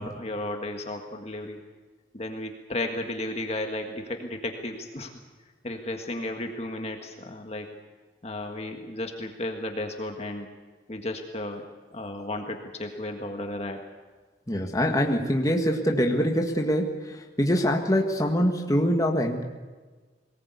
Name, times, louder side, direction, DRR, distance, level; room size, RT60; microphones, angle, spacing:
voice 1, 0.0-1.6 2.1-5.1 5.6-7.7 8.2-10.5 10.9-11.6 11.9-13.8, left 1 dB, 35° left, 4 dB, 1.7 m, -34 dB
voice 2, 14.5-19.4, equal, 20° left, 1 dB, 1.8 m, -24 dB
21.5 x 19.0 x 8.3 m, 1.4 s
head